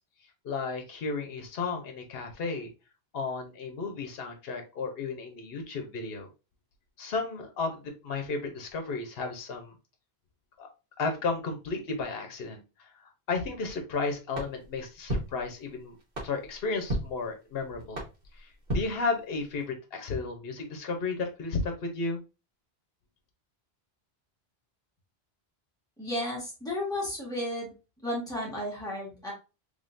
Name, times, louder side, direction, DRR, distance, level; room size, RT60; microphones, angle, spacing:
voice 1, 0.4-2.7 3.1-6.3 7.0-9.7 10.6-10.7 11.0-16.0 16.2-18.0 18.3-22.2, left 4 dB, 70° left, 4 dB, 1.1 m, -33 dB
sound 1, 14.3-19.7, right 1 dB, 90° right, 1.6 m, -37 dB
voice 2, 26.0-27.7 28.0-29.3, left 1 dB, 5° left, -4 dB, 1.6 m, -33 dB
3.6 x 3.4 x 2.5 m, 0.29 s
omnidirectional pair, 1.1 m